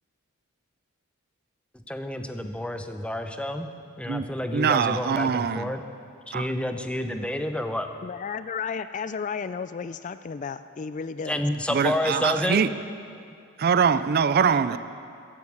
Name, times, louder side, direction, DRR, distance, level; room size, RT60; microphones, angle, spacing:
voice 1, 1.7-3.7 4.0-5.8 6.3-7.9 11.3-12.7, left 1 dB, 5° left, 6 dB, 0.7 m, -29 dB
voice 2, 4.5-5.7 6.3-6.5 11.7-12.7 13.6-14.8, right 6 dB, 45° right, 14 dB, 0.4 m, -23 dB
voice 3, 8.0-11.4, left 6 dB, 35° left, 13 dB, 0.3 m, -33 dB
14.5 x 11.0 x 8.2 m, 2.4 s
head